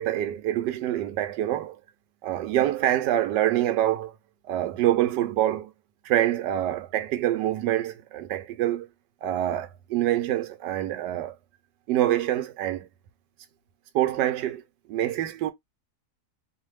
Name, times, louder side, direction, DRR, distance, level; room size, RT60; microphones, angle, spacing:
voice 1, 0.0-1.8 2.2-4.1 4.5-5.7 6.0-8.9 9.2-11.3 11.9-12.9 13.9-14.6 14.9-15.5, right 13 dB, 80° right, 1.2 m, -25 dB
3.0 x 2.1 x 3.2 m
omnidirectional pair, 1.9 m